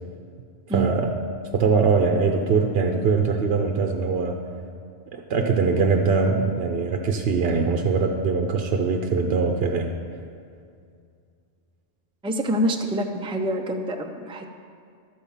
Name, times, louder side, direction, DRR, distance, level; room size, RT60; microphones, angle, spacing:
voice 1, 0.7-1.2 1.5-4.4 5.1-9.9, right 4 dB, 65° right, 4 dB, 0.9 m, -22 dB
voice 2, 12.2-14.4, right 1 dB, 10° right, 4 dB, 0.4 m, -26 dB
13.0 x 4.5 x 7.2 m, 2.3 s
omnidirectional pair, 1.1 m